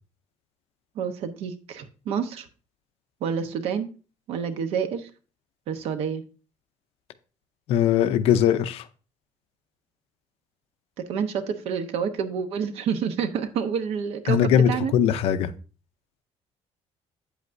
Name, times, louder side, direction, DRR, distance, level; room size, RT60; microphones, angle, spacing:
voice 1, 0.9-2.5 3.2-3.9 4.3-5.1 5.7-6.2 11.1-14.9, right 7 dB, 60° right, 1.0 m, -28 dB
voice 2, 7.7-8.8 14.3-15.5, left 9 dB, 60° left, 0.6 m, -20 dB
8.6 x 8.1 x 2.6 m
cardioid pair, 175°, 11 cm